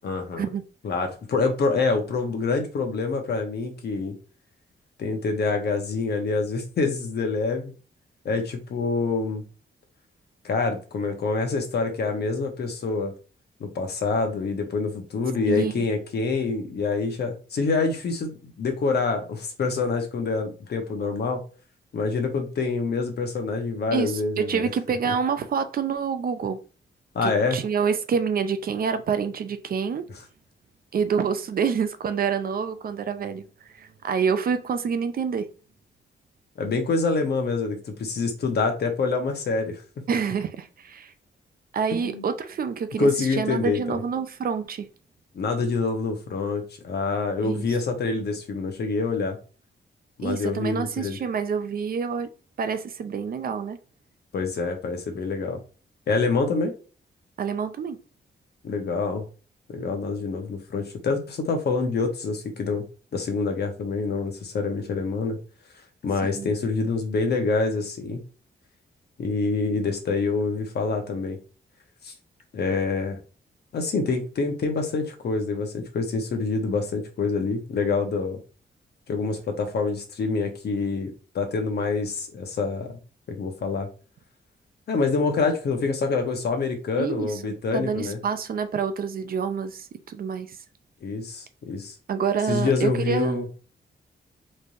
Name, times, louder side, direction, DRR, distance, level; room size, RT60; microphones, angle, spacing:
voice 1, 0.0-0.4 0.8-4.1 5.0-7.7 8.2-9.4 10.4-13.1 13.6-21.4 21.9-24.7 27.1-27.6 36.6-39.8 41.9-42.3 43.0-44.0 45.3-49.4 50.2-51.2 54.3-55.6 56.1-56.7 58.6-59.2 59.7-62.8 63.1-65.4 66.0-68.2 69.2-71.4 72.0-72.1 72.5-73.2 73.7-78.4 79.1-83.0 83.3-83.9 84.9-88.2 91.0-92.0 92.5-93.5, left 4 dB, 60° left, 1.0 m, -26 dB
voice 2, 15.5-15.8 23.9-26.6 27.2-30.0 30.9-33.4 33.7-35.5 40.1-41.1 41.7-44.9 47.4-47.6 50.2-52.3 52.6-53.8 57.4-58.0 66.2-66.5 87.0-90.6 92.1-93.5, right 6 dB, 50° right, 0.5 m, -27 dB
4.3 x 3.2 x 2.6 m
wide cardioid pair, 165°, 19 cm